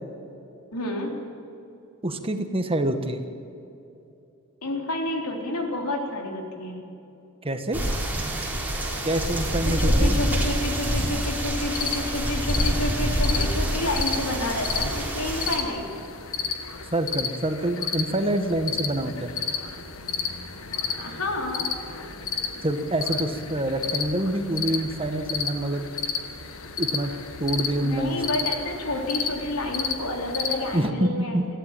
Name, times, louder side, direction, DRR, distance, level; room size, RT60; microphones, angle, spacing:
voice 1, 0.7-1.1 4.6-6.8 9.6-15.9 20.9-21.7 27.8-31.4, left 2 dB, 85° left, 1 dB, 3.7 m, -29 dB
voice 2, 2.0-3.2 7.4-7.8 9.0-10.2 16.9-19.3 22.6-25.9 26.8-27.1 27.4-28.2 30.7-31.5, right 1 dB, 25° right, 7 dB, 1.4 m, -26 dB
sound 1, 7.7-15.6, right 1 dB, 10° right, 3.9 m, -26 dB
sound 2, 11.7-30.9, left 6 dB, 65° left, 1.6 m, -32 dB
21.5 x 14.0 x 9.1 m, 2.8 s
head